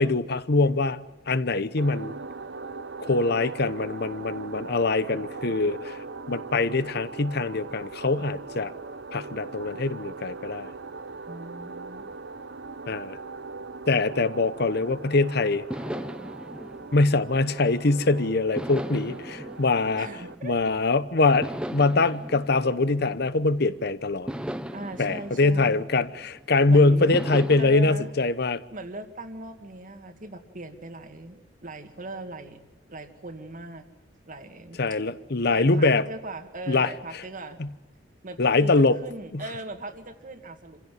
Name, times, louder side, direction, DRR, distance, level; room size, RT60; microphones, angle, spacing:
voice 1, 0.0-2.1 3.0-6.0 6.3-8.7 9.1-10.7 12.9-13.2 13.9-15.7 16.9-20.1 20.4-24.3 25.0-28.6 34.8-36.0 36.7-36.9 37.6-37.7 38.4-39.0 39.3-39.4, left 3 dB, 60° left, 0.9 m, -23 dB
sound 1, 1.8-20.3, right 3 dB, 70° right, 0.9 m, -40 dB
voice 2, 11.3-12.1 20.0-20.6 24.7-25.9 26.7-27.2 27.6-28.1 28.7-32.6 32.9-33.9 34.3-35.0 35.5-37.6 38.2-40.8, right 2 dB, 45° right, 2.1 m, -39 dB
sound 2, 14.7-15.1 15.7-18.0 18.6-20.8 21.4-23.7 24.3-26.5 27.1-27.6, equal, 5° right, 0.8 m, -37 dB
27.0 x 16.0 x 9.3 m
head